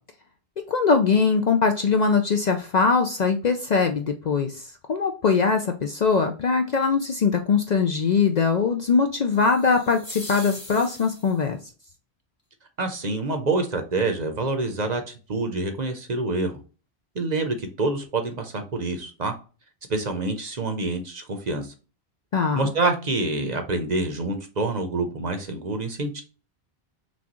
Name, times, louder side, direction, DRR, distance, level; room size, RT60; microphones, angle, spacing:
voice 1, 0.7-11.6 22.3-22.7, left 5 dB, 55° left, 5 dB, 0.5 m, -22 dB
sound 1, 9.3-11.5, left 2 dB, 25° left, 1.1 m, -41 dB
voice 2, 12.8-16.6 17.1-19.3 19.9-21.7 22.5-26.2, right 3 dB, 45° right, 6 dB, 0.8 m, -27 dB
6.1 x 2.4 x 2.9 m, 0.35 s
omnidirectional pair, 1.1 m